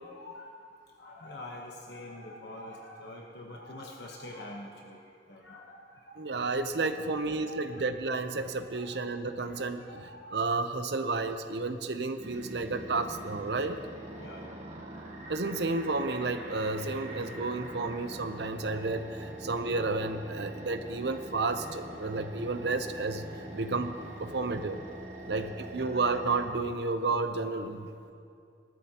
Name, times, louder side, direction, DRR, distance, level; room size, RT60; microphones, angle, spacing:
voice 1, 0.0-0.6 1.0-5.0 5.3-6.3 7.0-7.8 8.4-9.0 9.4-10.4 14.2-14.6 21.9-22.0 25.2-25.7, left 1 dB, 70° left, -1 dB, 1.1 m, -46 dB
voice 2, 6.2-13.8 15.3-23.2 23.5-23.9 24.2-24.8 25.3-28.1, right 3 dB, 70° right, 8 dB, 0.7 m, -31 dB
sound 1, 12.2-26.5, right 1 dB, 40° right, 1.3 m, -44 dB
19.5 x 12.5 x 2.9 m, 2.4 s
head